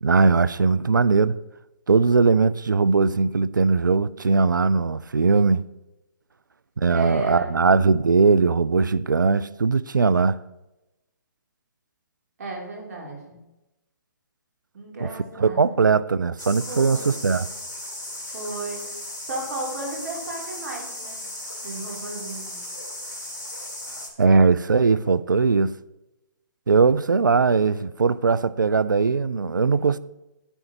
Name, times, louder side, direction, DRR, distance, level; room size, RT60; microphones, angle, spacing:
voice 1, 0.0-1.4 1.9-5.6 6.8-10.4 15.0-15.1 15.4-17.5 24.2-25.8 26.7-30.0, right 4 dB, 85° right, 0.4 m, -20 dB
voice 2, 6.9-7.6 12.4-13.4 14.7-15.8 16.7-17.2 18.3-18.8 19.3-21.2 21.6-22.6, right 2 dB, 55° right, 2.9 m, -34 dB
sound 1, 16.4-24.1, left 1 dB, 90° left, 2.4 m, -36 dB
9.9 x 8.9 x 2.8 m
figure-of-eight pair, 130°, 10 cm